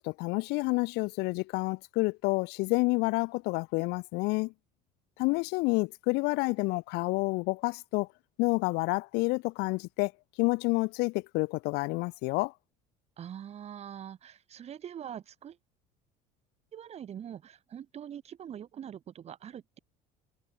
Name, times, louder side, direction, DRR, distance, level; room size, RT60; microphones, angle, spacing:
voice 1, 0.0-4.5 5.2-8.1 8.4-10.1 10.4-12.5, left 25 dB, 75° left, 1.2 m, -29 dB
voice 2, 13.2-15.6 16.7-19.8, right 9 dB, 40° right, 6.2 m, -43 dB
cardioid pair, 135°, 17 cm